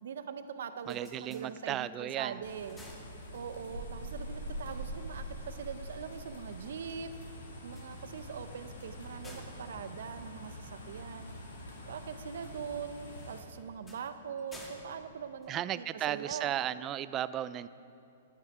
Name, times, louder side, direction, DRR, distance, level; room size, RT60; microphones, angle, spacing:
voice 1, 0.0-2.8 3.3-7.1 7.6-11.3 11.9-16.5, right 7 dB, 70° right, 10 dB, 0.7 m, -42 dB
sound 1, 0.5-2.1 2.5-3.8 7.6-11.0 13.1-16.2, left 1 dB, 10° left, 1.6 m, -55 dB
voice 2, 0.9-2.4 15.5-17.7, right 11 dB, 25° right, 16 dB, 0.3 m, -35 dB
sound 2, 2.4-13.4, equal, 80° left, 2.6 m, -44 dB
11.0 x 9.8 x 4.9 m, 2.8 s
hypercardioid pair, 135°, 0 cm